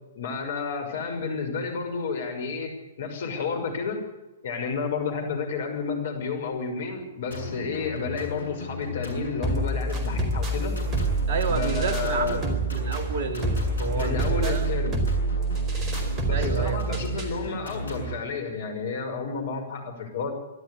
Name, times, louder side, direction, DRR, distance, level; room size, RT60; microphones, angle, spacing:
voice 1, 0.2-4.1 4.4-10.8 11.5-12.4 13.9-15.0 16.3-20.3, left 5 dB, 55° left, 5.9 m, -31 dB
sound 1, 7.3-18.1, left 1 dB, 75° left, 7.4 m, -35 dB
sound 2, 9.4-17.4, right 3 dB, 20° right, 4.4 m, -27 dB
voice 2, 11.3-14.7 16.3-17.0, right 4 dB, 45° right, 3.0 m, -30 dB
25.0 x 12.5 x 9.9 m
figure-of-eight pair, 115°, 0 cm